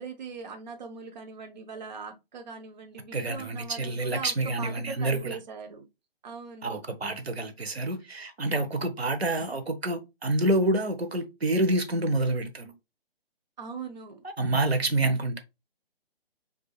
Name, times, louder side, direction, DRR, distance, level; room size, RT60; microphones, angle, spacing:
voice 1, 0.0-5.9 6.2-6.8 13.6-14.2, right 5 dB, 45° right, 0.8 m, -40 dB
voice 2, 3.1-5.4 6.6-12.7 14.4-15.4, right 2 dB, 85° right, 1.0 m, -27 dB
5.3 x 2.7 x 2.3 m
figure-of-eight pair, 145°, 31 cm